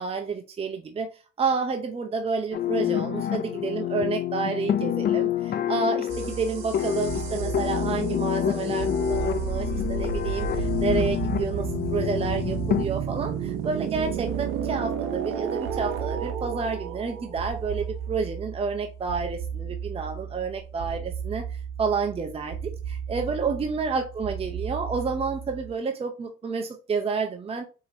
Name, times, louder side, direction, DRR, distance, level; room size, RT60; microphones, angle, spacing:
voice 1, 0.0-27.6, right 5 dB, 30° right, 0.6 m, -30 dB
sound 1, 2.5-12.8, left 10 dB, 55° left, 0.4 m, -27 dB
sound 2, 6.1-25.7, right 7 dB, 85° right, 0.6 m, -32 dB
4.8 x 2.9 x 2.6 m
cardioid pair, 90°, 20 cm